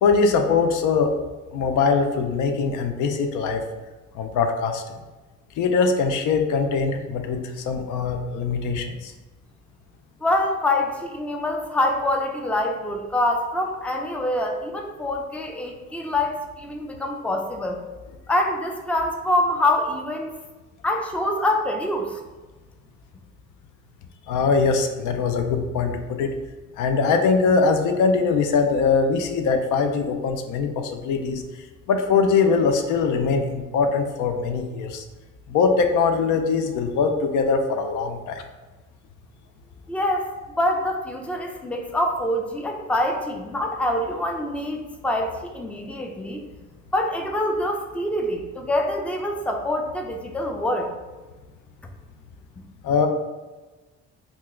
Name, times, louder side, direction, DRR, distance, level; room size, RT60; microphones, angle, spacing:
voice 1, 0.0-1.1 1.5-3.6 4.1-4.8 5.6-9.1 24.3-26.3 26.8-31.4 31.9-35.0 35.5-38.4 52.8-53.1, left 5 dB, 85° left, 6 dB, 0.5 m, -22 dB
voice 2, 10.2-17.8 18.3-20.3 20.8-22.2 39.9-46.4 46.9-50.9, left 1 dB, 5° left, 3 dB, 0.4 m, -25 dB
2.8 x 2.4 x 3.6 m, 1.2 s
cardioid pair, 90°, 30 cm